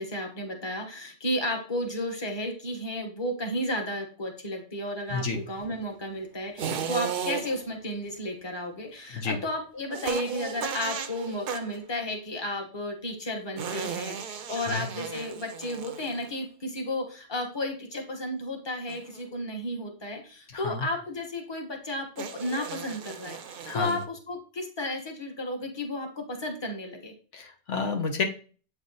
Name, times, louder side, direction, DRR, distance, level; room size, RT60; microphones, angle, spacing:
voice 1, 0.0-27.1, left 1 dB, 25° left, 2 dB, 1.2 m, -33 dB
sound 1, 6.6-7.7 9.9-11.8 13.6-16.4 18.9-19.2 22.2-24.0, right 7 dB, 60° right, 0.7 m, -35 dB
voice 2, 20.5-20.9 23.6-24.0 27.3-28.2, left 4 dB, 85° left, 4 dB, 1.3 m, -30 dB
8.0 x 3.4 x 4.0 m, 0.38 s
omnidirectional pair, 1.2 m